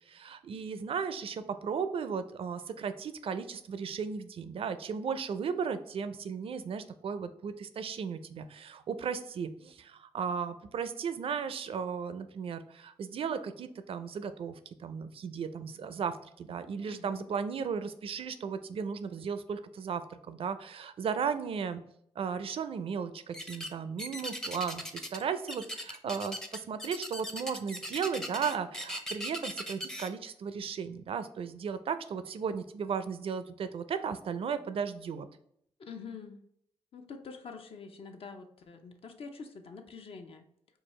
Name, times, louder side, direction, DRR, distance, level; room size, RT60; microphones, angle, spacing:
voice 1, 0.1-21.8 22.2-35.3, right 6 dB, 55° right, 11 dB, 0.4 m, -35 dB
voice 2, 16.8-17.3 35.8-36.4 36.9-40.5, left 5 dB, 60° left, 5 dB, 0.6 m, -46 dB
sound 1, 23.3-23.7 24.0-25.2 25.5-30.1, equal, 5° left, 0.5 m, -39 dB
4.6 x 2.3 x 3.1 m, 0.71 s
cardioid pair, 60°, 11 cm